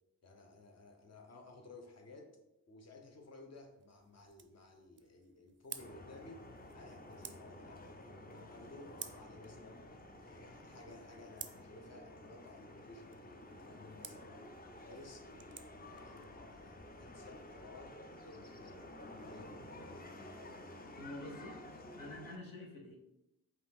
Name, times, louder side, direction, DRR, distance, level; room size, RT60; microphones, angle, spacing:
voice 1, 0.2-2.4 2.7-6.4 6.7-9.9 10.2-14.3 14.7-19.5, left 2 dB, 50° left, 3 dB, 0.9 m, -56 dB
sound 1, 2.9-16.3, right 7 dB, 35° right, 0.4 m, -55 dB
sound 2, 5.8-22.4, left 1 dB, 25° left, 0.6 m, -52 dB
voice 2, 21.0-21.6 22.0-23.0, left 1 dB, 75° left, 0 dB, 1.1 m, -47 dB
5.1 x 2.6 x 3.6 m, 0.88 s
cardioid pair, 55°, 34 cm